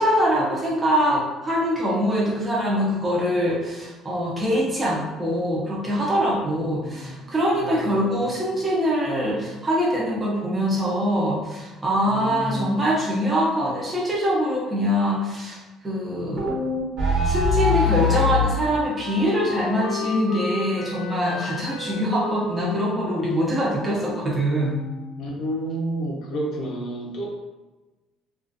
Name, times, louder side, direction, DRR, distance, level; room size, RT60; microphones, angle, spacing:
voice 1, 0.0-16.5 17.2-24.8, equal, 15° right, -5 dB, 0.5 m, -23 dB
voice 2, 6.6-7.2 7.5-8.3 12.1-12.7 25.2-27.3, equal, 60° left, -1 dB, 0.7 m, -31 dB
sound 1, 16.4-18.5, left 3 dB, 50° right, 1.1 m, -21 dB
Wind instrument woodwind instrument, 17.9-25.4, left 4 dB, 90° left, 0.3 m, -34 dB
2.3 x 2.2 x 2.5 m, 1.1 s
cardioid pair, 120°, 0 cm